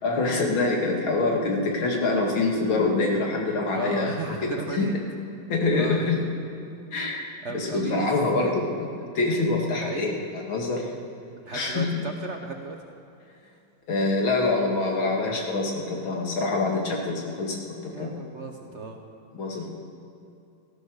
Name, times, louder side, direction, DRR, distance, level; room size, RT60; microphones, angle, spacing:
voice 1, 0.0-4.9 5.5-6.2 6.9-7.2 7.5-8.9 9.1-10.9 11.5-12.1 13.9-18.2 19.3-19.7, left 3 dB, 85° left, 0 dB, 2.9 m, -25 dB
voice 2, 3.7-4.9 5.8-6.1 7.4-8.1 8.4-8.6 9.8-10.1 11.4-12.8 17.9-19.0, right 4 dB, 45° right, 3 dB, 1.1 m, -35 dB
15.5 x 13.5 x 6.4 m, 2.6 s
omnidirectional pair, 2.2 m